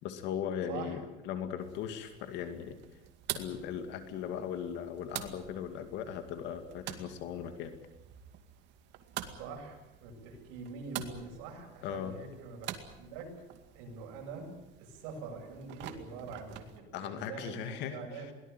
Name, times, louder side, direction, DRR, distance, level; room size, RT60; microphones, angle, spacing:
voice 1, 0.0-2.7 3.3-7.7 11.8-12.1 16.9-18.3, left 8 dB, 60° left, 8 dB, 2.3 m, -38 dB
sound 1, 1.6-16.8, right 12 dB, 60° right, 2.2 m, -47 dB
voice 2, 9.3-13.3 13.7-14.5 14.8-18.3, right 4 dB, 85° right, 2 dB, 7.6 m, -44 dB
22.5 x 18.5 x 9.2 m, 1.0 s
cardioid pair, 165°, 21 cm